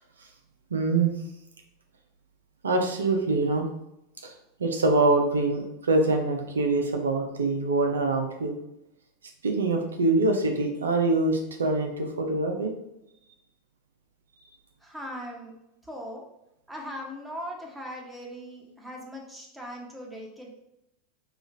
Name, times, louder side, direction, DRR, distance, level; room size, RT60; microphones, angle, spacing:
voice 1, 0.7-1.1 2.6-3.7 4.2-4.3 4.6-8.6 9.4-12.7, right 2 dB, 85° right, 3 dB, 0.6 m, -24 dB
voice 2, 14.8-15.5 15.8-16.2 16.7-20.5, equal, 10° right, -1 dB, 1.1 m, -39 dB
4.9 x 2.4 x 2.6 m, 0.84 s
hypercardioid pair, 95°, 0 cm